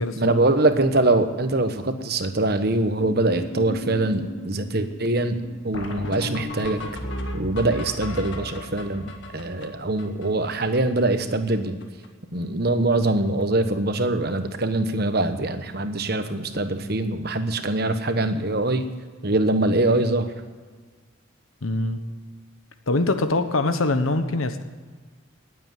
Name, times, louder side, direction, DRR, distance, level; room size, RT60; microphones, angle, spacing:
voice 1, 0.2-5.4 5.6-6.8 7.3-11.8 12.3-18.9 19.2-20.3, right 2 dB, 50° right, 8 dB, 1.1 m, -23 dB
sound 1, 3.0-11.2 11.5-11.6 11.8-12.1 12.3-12.9 13.2-13.4 14.2-14.3 14.8-14.9 15.1-15.3 17.6-17.7 20.0-20.1, left 1 dB, 65° left, 1.8 m, -36 dB
voice 2, 21.6-22.0 22.9-24.6, left 2 dB, 85° left, 9 dB, 1.2 m, -23 dB
19.0 x 7.9 x 7.7 m, 1.5 s
head